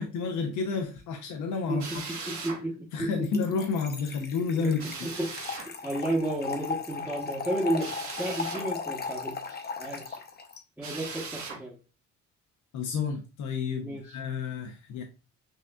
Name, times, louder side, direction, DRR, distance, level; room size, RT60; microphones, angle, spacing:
voice 1, 0.0-2.3 2.9-4.8 10.8-10.9 12.7-15.0, left 5 dB, 75° left, 4 dB, 0.7 m, -31 dB
voice 2, 1.7-3.4 4.5-10.2 10.8-11.8 13.8-14.2, right 1 dB, 5° right, -2 dB, 0.9 m, -33 dB
Drill, 1.8-2.6 4.8-5.7 7.8-8.7 10.8-11.6, right 4 dB, 70° right, 1.4 m, -39 dB
Trickle dribble / Fill (with liquid), 3.2-10.6, left 5 dB, 30° left, 0.7 m, -37 dB
6.3 x 2.4 x 2.2 m, 0.31 s
cardioid pair, 90°, 30 cm